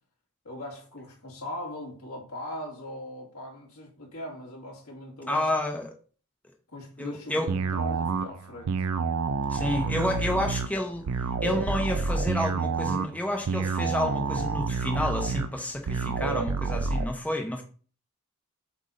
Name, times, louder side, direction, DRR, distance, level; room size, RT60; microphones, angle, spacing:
voice 1, 0.4-5.5 6.7-8.8 9.8-10.1, left 1 dB, 80° left, 2.5 m, -40 dB
voice 2, 5.3-5.9 7.0-7.5 9.5-11.1 11.4-17.6, left 1 dB, 5° left, 0.8 m, -30 dB
sound 1, 7.5-17.1, right 4 dB, 80° right, 0.5 m, -28 dB
7.9 x 2.7 x 5.0 m
head